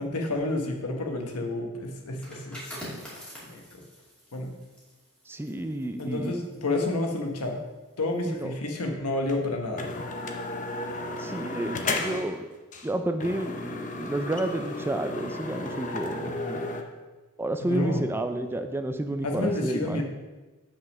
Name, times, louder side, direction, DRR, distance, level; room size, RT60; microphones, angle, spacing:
voice 1, 0.0-2.6 3.4-3.8 4.3-4.5 6.0-7.6 8.0-9.9 17.6-18.0 19.2-20.0, left 2 dB, 80° left, 3 dB, 1.2 m, -30 dB
sound 1, 2.1-7.6 7.9-8.2, equal, 5° left, 2.6 m, -45 dB
voice 2, 5.3-6.3 8.3-8.5 11.2-12.5 12.8-16.7 17.4-20.0, right 1 dB, 10° right, 8 dB, 0.4 m, -30 dB
sound 2, 9.3-9.4 9.8-12.4 12.7-12.9 13.2-16.8, left 2 dB, 35° left, 0.7 m, -33 dB
6.0 x 5.2 x 6.2 m, 1.2 s
head